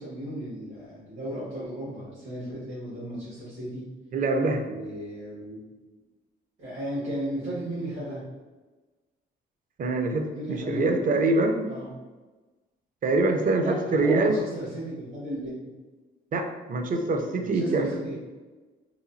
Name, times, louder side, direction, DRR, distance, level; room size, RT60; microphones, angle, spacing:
voice 1, 0.0-3.8 4.6-5.6 6.6-8.2 10.3-10.9 11.6-11.9 13.6-15.7 17.4-18.2, right 1 dB, 90° right, -11 dB, 1.4 m, -35 dB
voice 2, 4.1-4.7 9.8-11.7 13.0-14.4 16.3-17.9, right 2 dB, 45° right, 5 dB, 0.4 m, -24 dB
3.0 x 2.2 x 2.5 m, 1.2 s
cardioid pair, 90°, 20 cm